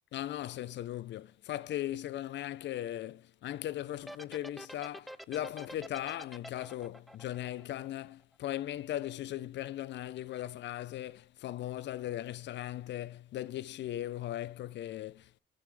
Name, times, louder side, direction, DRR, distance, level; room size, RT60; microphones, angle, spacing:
voice 1, 0.1-15.4, left 13 dB, 65° left, 0.4 m, -38 dB
sound 1, 4.0-8.3, equal, ahead, 0.3 m, -47 dB
7.1 x 6.8 x 3.4 m
cardioid pair, 90°, 20 cm